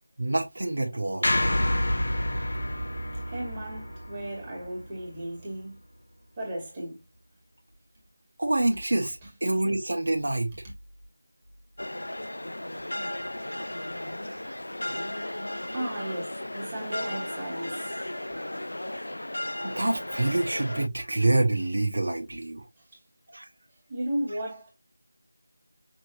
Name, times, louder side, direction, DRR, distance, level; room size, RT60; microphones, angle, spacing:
voice 1, 0.2-1.3 8.4-10.5 13.6-13.7 19.6-22.7 23.3-23.5, right 2 dB, 60° right, 1.2 m, -27 dB
sound 1, 1.2-5.5, left 1 dB, 65° left, 1.0 m, -29 dB
voice 2, 3.1-5.8 6.4-7.0 9.2-9.3 10.5-10.6 13.7-13.8 15.7-18.0 23.9-24.7, right 1 dB, 20° right, 2.1 m, -35 dB
sound 2, 11.8-20.9, left 1 dB, 80° left, 0.4 m, -35 dB
6.1 x 3.1 x 2.7 m
figure-of-eight pair, 170°, 0 cm